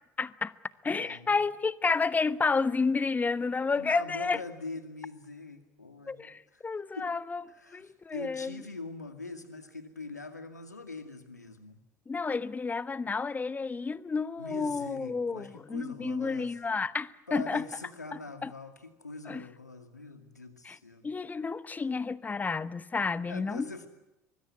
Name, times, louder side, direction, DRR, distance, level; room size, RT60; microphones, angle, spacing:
voice 1, 0.2-0.5 0.8-4.4 6.1-7.4 7.7-8.6 12.1-17.6 18.1-18.5 19.3-19.4 20.6-20.8 21.0-23.9, left 4 dB, 20° left, 1.0 m, -31 dB
voice 2, 1.0-1.4 3.8-6.7 7.0-7.1 7.5-11.8 14.4-16.6 17.3-21.0 23.3-23.9, left 3 dB, 85° left, 2.3 m, -43 dB
24.0 x 21.0 x 9.7 m
figure-of-eight pair, 65°, 9 cm